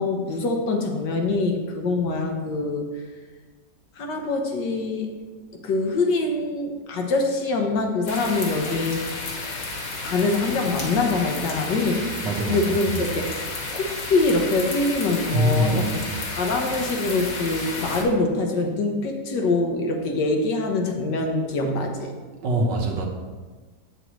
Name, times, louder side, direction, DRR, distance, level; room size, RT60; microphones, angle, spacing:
voice 1, 0.0-2.9 4.0-5.1 5.5-9.2 10.0-12.0 12.5-13.3 13.7-15.9 16.2-22.1, left 3 dB, 90° left, 3 dB, 1.7 m, -24 dB
sound 1, 8.1-18.0, left 3 dB, 55° left, 1.6 m, -32 dB
voice 2, 12.2-13.0 15.3-16.2 22.4-23.1, right 1 dB, 90° right, 1 dB, 1.8 m, -24 dB
8.2 x 7.6 x 3.1 m, 1.4 s
omnidirectional pair, 1.8 m